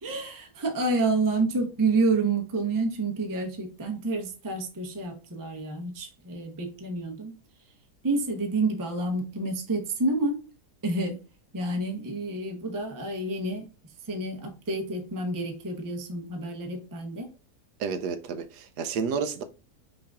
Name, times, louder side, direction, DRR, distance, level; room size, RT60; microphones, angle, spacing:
voice 1, 0.0-7.4 8.0-10.4 10.8-11.2 11.5-17.3, right 3 dB, 25° right, 0.4 m, -29 dB
voice 2, 17.8-19.4, right 6 dB, 80° right, 1.2 m, -30 dB
5.6 x 2.6 x 3.4 m
omnidirectional pair, 1.7 m